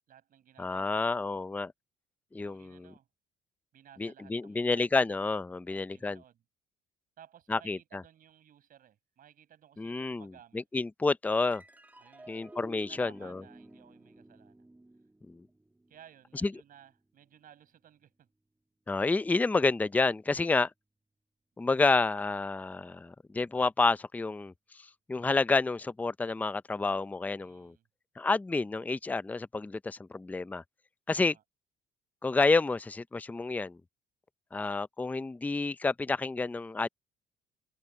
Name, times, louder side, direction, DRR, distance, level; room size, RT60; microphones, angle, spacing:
voice 1, 0.1-1.5 2.4-3.1 3.7-5.0 5.7-6.4 7.2-10.7 12.0-12.4 12.7-14.7 15.9-18.3 27.4-27.9 31.1-31.4, right 10 dB, 55° right, 7.1 m, -57 dB
voice 2, 0.6-1.7 2.3-2.9 4.0-6.2 7.5-8.0 9.8-10.3 10.5-11.6 12.3-13.4 15.3-15.4 16.4-16.5 18.9-20.7 21.6-24.5 25.1-27.7 28.2-30.6 31.1-31.3 32.2-33.8 34.5-36.9, left 3 dB, 10° left, 0.5 m, -29 dB
sound 1, 11.5-18.2, right 2 dB, 10° right, 2.4 m, -54 dB
cardioid pair, 110°, 17 cm